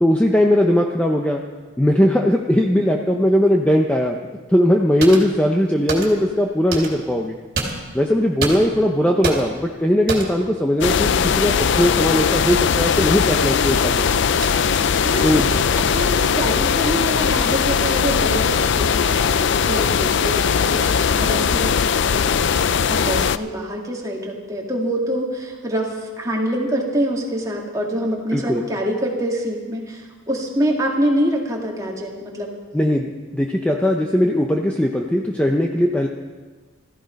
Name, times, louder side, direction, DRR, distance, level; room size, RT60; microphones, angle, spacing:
voice 1, 0.0-1.4 1.8-4.2 4.5-7.3 7.9-14.1 15.2-15.5 28.3-28.6 32.7-36.1, equal, 5° left, 1 dB, 0.7 m, -19 dB
sound 1, 5.0-5.4 5.9-6.3 6.7-7.1 7.5-8.1 8.4-8.9 9.2-9.7 10.1-10.5 11.8-12.0 12.7-12.9 13.3-13.9 14.4-14.5, right 3 dB, 45° right, 2.9 m, -28 dB
sound 2, 10.8-23.4, left 6 dB, 55° left, 0.4 m, -19 dB
voice 2, 15.0-15.6 15.9-20.8 21.2-22.4 22.9-32.5, equal, 15° right, -2 dB, 2.3 m, -25 dB
16.0 x 14.5 x 5.3 m, 1.4 s
head